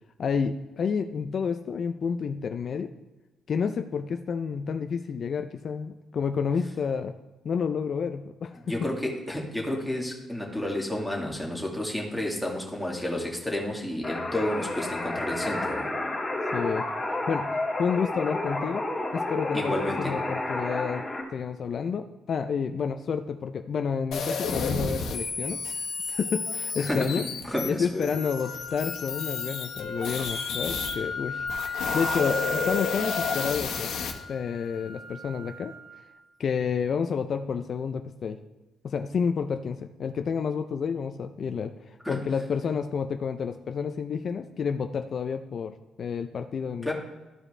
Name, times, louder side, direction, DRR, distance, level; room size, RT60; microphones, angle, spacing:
voice 1, 0.2-2.9 3.5-7.1 7.4-8.6 16.5-16.9 17.3-18.9 19.1-21.1 21.3-25.6 26.1-27.3 27.7-31.5 31.9-33.9 34.3-35.7 36.4-38.4 38.8-46.9, left 6 dB, 55° left, 8 dB, 0.4 m, -30 dB
voice 2, 8.7-15.9 19.5-20.2 26.8-28.1 42.0-42.2 46.8-46.9, left 1 dB, ahead, -2 dB, 2.1 m, -31 dB
sound 1, 14.0-21.2, left 2 dB, 20° left, 2.0 m, -31 dB
sound 2, 24.1-30.9 31.4-34.1, left 5 dB, 80° left, 1.3 m, -32 dB
sound 3, 28.1-36.1, left 2 dB, 35° right, 1.7 m, -36 dB
13.5 x 4.9 x 3.3 m, 1.1 s
cardioid pair, 90°, 0 cm